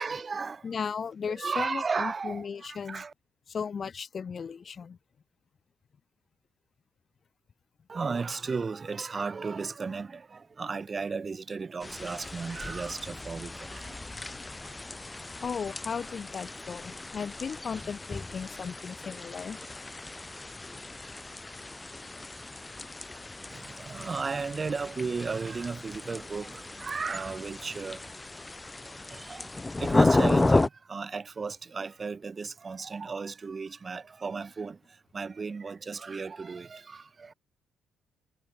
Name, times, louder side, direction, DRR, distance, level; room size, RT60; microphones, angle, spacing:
voice 1, 0.0-0.6 1.3-3.1 7.9-13.9 23.5-28.0 29.1-29.5 29.8-34.8 35.1-37.3, right 4 dB, 35° right, 4.2 m, -35 dB
voice 2, 0.6-3.0 3.5-5.0 14.3-14.4 15.4-19.6, left 6 dB, 45° left, 3.6 m, -36 dB
sound 1, 11.8-30.7, left 2 dB, 20° left, 5.9 m, -32 dB
cardioid pair, 90°, 0 cm